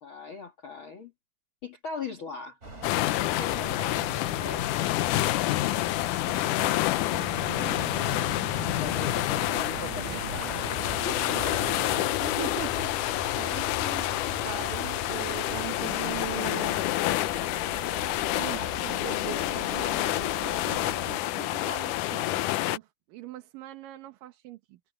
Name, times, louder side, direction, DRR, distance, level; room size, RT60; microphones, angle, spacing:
voice 1, 0.0-1.1 1.6-2.6 3.4-4.8 8.8-10.7 11.1-11.3, left 5 dB, 45° left, 2.3 m, -39 dB
sound 1, 2.6-21.2, right 2 dB, 20° right, 3.8 m, -42 dB
sound 2, 2.8-22.8, left 16 dB, 80° left, 2.1 m, -28 dB
sound 3, 7.1-12.1, right 8 dB, 60° right, 1.3 m, -41 dB
voice 2, 7.5-8.3 11.3-14.1 14.4-16.8 18.4-24.8, right 16 dB, 85° right, 2.9 m, -41 dB
omnidirectional pair, 3.8 m